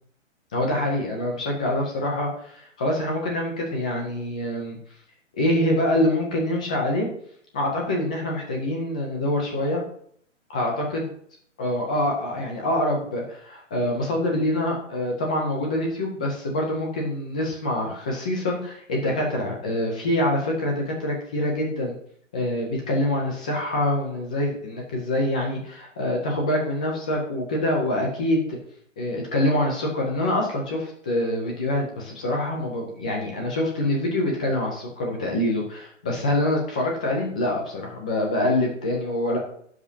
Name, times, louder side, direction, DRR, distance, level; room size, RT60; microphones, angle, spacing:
voice 1, 0.5-4.8 5.3-7.1 7.5-9.8 10.5-11.0 11.6-21.9 22.3-28.6 29.0-39.4, left 1 dB, 5° left, 0 dB, 0.5 m, -25 dB
19.5 x 7.2 x 2.8 m, 0.65 s
hypercardioid pair, 160°, 38 cm